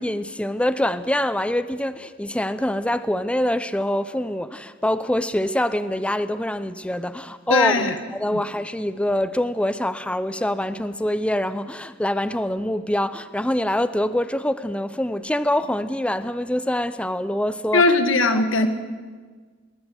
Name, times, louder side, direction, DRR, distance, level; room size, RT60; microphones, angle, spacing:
voice 1, 0.0-18.0 18.3-18.4, left 1 dB, 5° left, 0.6 m, -25 dB
voice 2, 7.5-8.0 8.3-8.4 17.7-18.7, left 3 dB, 90° left, 1.8 m, -19 dB
22.0 x 19.5 x 7.9 m
head